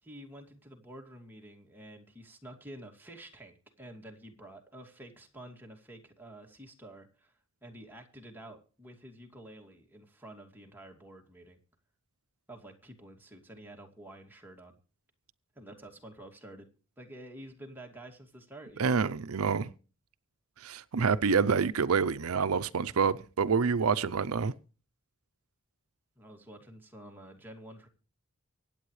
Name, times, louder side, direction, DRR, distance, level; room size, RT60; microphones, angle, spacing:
voice 1, 0.0-11.6 12.5-14.8 15.5-16.7 17.0-19.0 26.2-27.9, right 1 dB, 10° right, 2.5 m, -49 dB
voice 2, 18.8-19.7 20.6-24.5, right 5 dB, 80° right, 0.6 m, -27 dB
24.5 x 8.7 x 3.2 m
head